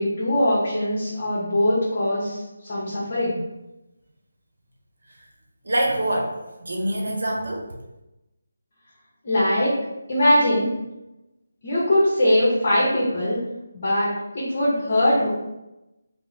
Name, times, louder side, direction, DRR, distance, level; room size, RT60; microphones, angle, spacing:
voice 1, 0.0-2.4 2.7-3.4 9.2-9.7 10.1-10.7 11.6-13.4 13.7-15.3, left 1 dB, 40° left, -6 dB, 0.9 m, -21 dB
voice 2, 5.6-7.7, right 1 dB, 75° right, 0 dB, 0.9 m, -25 dB
2.8 x 2.1 x 4.0 m, 0.97 s
figure-of-eight pair, 165°, 0 cm